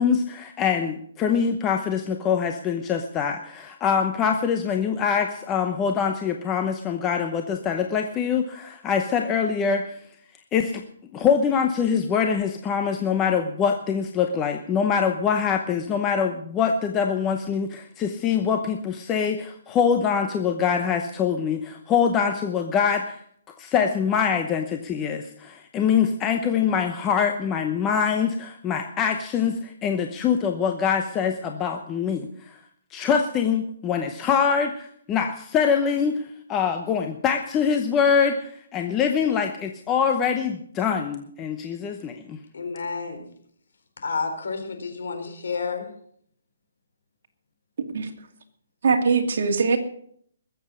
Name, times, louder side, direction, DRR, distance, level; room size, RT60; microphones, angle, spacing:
voice 1, 0.0-10.0 10.5-10.8 11.1-23.2 23.6-32.6 32.9-36.2 36.5-42.4, left 7 dB, 15° left, 5 dB, 0.9 m, -24 dB
voice 2, 42.5-43.3 44.0-45.9, left 5 dB, 75° left, 6 dB, 4.2 m, -30 dB
voice 3, 48.8-49.8, right 5 dB, 55° right, 4 dB, 2.5 m, -21 dB
20.5 x 8.0 x 6.4 m, 0.64 s
hypercardioid pair, 165°, 0 cm